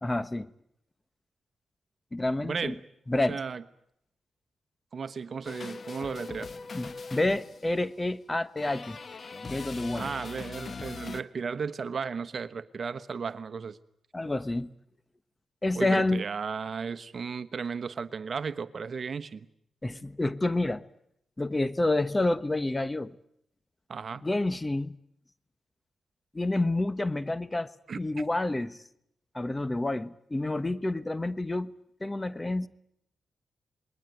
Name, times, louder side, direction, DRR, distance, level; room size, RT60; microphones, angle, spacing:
voice 1, 0.0-0.5 2.1-2.7 3.1-3.4 6.7-9.0 9.4-10.1 14.1-14.7 15.6-16.2 19.8-20.8 21.4-23.1 24.2-24.9 26.3-27.7 28.0-28.8 29.3-31.7 32.0-32.7, left 2 dB, 20° left, 14 dB, 1.2 m, -28 dB
voice 2, 2.4-2.8 3.1-3.6 4.9-6.5 9.9-13.8 15.8-19.4 23.9-24.2 27.9-28.0, right 5 dB, 55° right, 13 dB, 1.2 m, -35 dB
sound 1, 5.4-7.9 8.6-11.2, left 4 dB, 50° left, 1.2 m, -41 dB
28.0 x 21.0 x 9.2 m, 0.75 s
cardioid pair, 65°, 0 cm